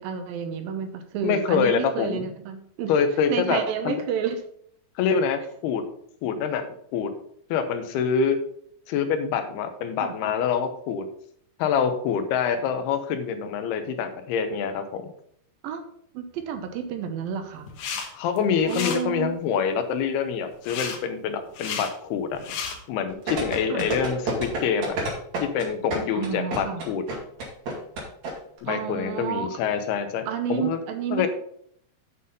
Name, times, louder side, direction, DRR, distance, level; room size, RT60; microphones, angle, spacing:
voice 1, 0.0-2.9 3.3-4.4 10.0-10.1 15.6-15.8 16.1-17.7 18.7-19.3 23.7-23.9 26.1-26.8 28.7-29.5 30.3-31.3, right 7 dB, 75° right, 6 dB, 2.6 m, -30 dB
voice 2, 1.2-2.3 2.9-3.6 3.9-4.0 5.0-5.8 6.2-6.6 6.9-7.1 7.5-8.4 8.9-11.1 11.6-15.1 18.1-22.5 22.9-25.0 25.4-27.0 28.6-30.8 31.1-31.3, left 6 dB, 90° left, 8 dB, 3.0 m, -26 dB
sound 1, 17.7-18.1 18.4-19.0 20.7-21.0 21.5-21.9 22.3-22.8, left 6 dB, 75° left, 3.0 m, -32 dB
sound 2, 23.3-28.3 28.6-28.7, right 2 dB, 50° right, 3.5 m, -28 dB
8.2 x 5.8 x 5.5 m, 0.67 s
omnidirectional pair, 4.4 m